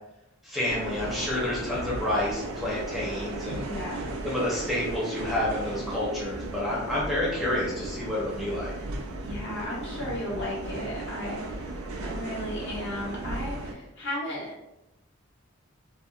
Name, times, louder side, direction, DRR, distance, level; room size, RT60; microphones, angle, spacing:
voice 1, 0.4-3.7 3.9-8.7, left 1 dB, ahead, -7 dB, 0.6 m, -29 dB
sound 1, 0.7-13.7, right 2 dB, 85° right, 0.4 m, -36 dB
voice 2, 3.6-4.2 9.2-14.5, left 1 dB, 60° left, -5 dB, 0.9 m, -35 dB
2.7 x 2.1 x 2.2 m, 0.92 s
head